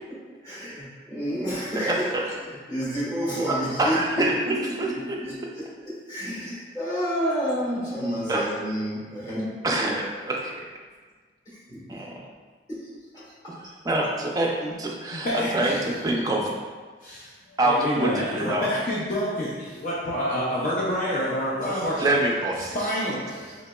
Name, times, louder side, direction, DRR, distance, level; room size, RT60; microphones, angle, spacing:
voice 1, 0.1-2.1 2.4-9.5 11.4-12.0 12.7-12.8 13.1-13.2, equal, 20° left, -10 dB, 1.3 m, -30 dB
voice 2, 1.8-2.2 3.5-5.2 8.3-8.4 9.6-10.6 11.9-12.1 13.8-16.6 17.6-18.7 22.0-22.9, right 1 dB, 20° right, -1 dB, 0.4 m, -25 dB
voice 3, 15.1-15.8 17.0-17.2 17.7-22.1 22.7-23.5, equal, 45° left, -7 dB, 0.5 m, -28 dB
3.9 x 2.9 x 2.2 m, 1.5 s
head